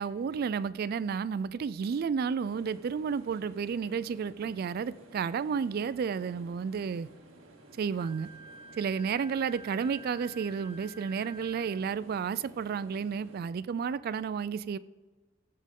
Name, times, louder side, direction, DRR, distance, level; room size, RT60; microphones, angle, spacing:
voice 1, 0.0-7.1 7.8-8.3 8.8-14.8, right 6 dB, 50° right, 0.3 m, -32 dB
sound 1, 2.4-13.4, right 1 dB, 85° right, 1.8 m, -55 dB
Wind instrument woodwind instrument, 7.9-11.8, right 2 dB, 70° right, 2.3 m, -50 dB
17.5 x 7.4 x 3.6 m
head